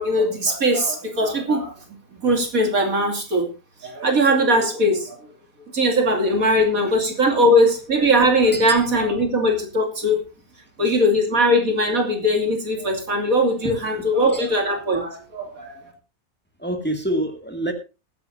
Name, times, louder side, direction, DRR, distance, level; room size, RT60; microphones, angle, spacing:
voice 1, 0.0-1.7 2.1-3.5 3.8-5.2 5.7-10.2 10.8-15.7, equal, 75° right, 3.0 m, -20 dB
voice 2, 16.6-17.7, right 1 dB, 5° left, 1.9 m, -26 dB
20.0 x 10.5 x 2.7 m
omnidirectional pair, 1.5 m